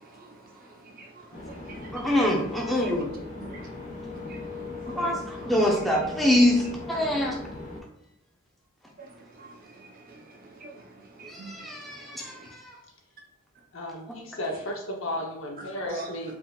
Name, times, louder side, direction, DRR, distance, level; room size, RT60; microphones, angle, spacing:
voice 1, 0.0-1.9 3.4-3.6 4.1-5.2 5.9-6.1 9.0-12.5 15.9-16.1, right 2 dB, 40° right, 0 dB, 0.8 m, -46 dB
sound 1, 1.3-7.8, left 3 dB, 35° left, 1.0 m, -39 dB
voice 2, 1.9-3.1 4.9-7.4 11.3-12.7, left 1 dB, ahead, -2 dB, 0.7 m, -25 dB
voice 3, 13.7-16.3, left 1 dB, 65° left, 0 dB, 1.0 m, -34 dB
4.9 x 3.7 x 2.4 m, 0.85 s
head